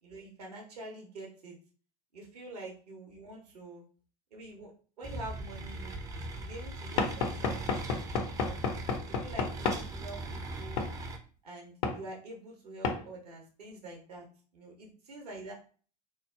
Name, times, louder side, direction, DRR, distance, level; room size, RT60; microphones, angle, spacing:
voice 1, 0.0-1.6 2.1-3.8 4.3-4.7 5.0-6.0 6.4-7.8 8.3-8.6 9.1-10.8 11.4-14.3 14.5-15.5, right 2 dB, 70° right, -1 dB, 0.8 m, -46 dB
sound 1, 5.0-11.2, right 2 dB, 15° right, 0.4 m, -40 dB
Knock / Wood, 7.0-9.9 10.8-10.9 11.8-12.0 12.8-13.0, left 4 dB, 50° left, 0.5 m, -31 dB
2.9 x 2.0 x 2.3 m, 0.40 s
figure-of-eight pair, 75°, 21 cm